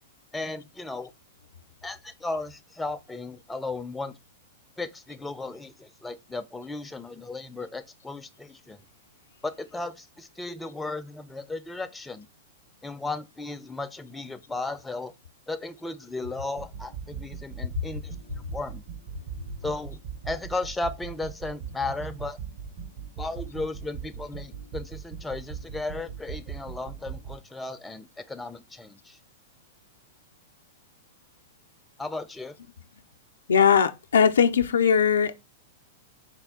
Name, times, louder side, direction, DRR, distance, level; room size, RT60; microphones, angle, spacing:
voice 1, 0.3-1.1 1.8-4.1 4.8-8.8 9.4-12.3 12.8-15.1 15.5-18.8 19.6-20.0 20.2-22.4 23.2-29.2 32.0-32.6, left 2 dB, 10° left, 0.3 m, -35 dB
sound 1, 16.6-27.4, right 7 dB, 50° right, 0.7 m, -40 dB
voice 2, 33.5-35.3, left 7 dB, 80° left, 0.4 m, -20 dB
4.2 x 2.3 x 3.5 m
hypercardioid pair, 110°, 0 cm